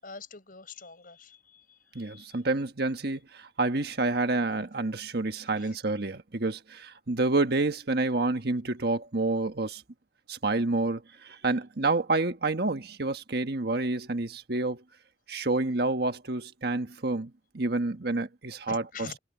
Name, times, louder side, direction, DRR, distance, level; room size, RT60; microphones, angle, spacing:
voice 1, 0.0-2.4 5.5-5.8 18.7-19.2, left 4 dB, 50° left, 7.6 m, -45 dB
voice 2, 1.9-9.8 10.3-14.8 15.3-18.8, right 2 dB, 65° right, 1.5 m, -28 dB
head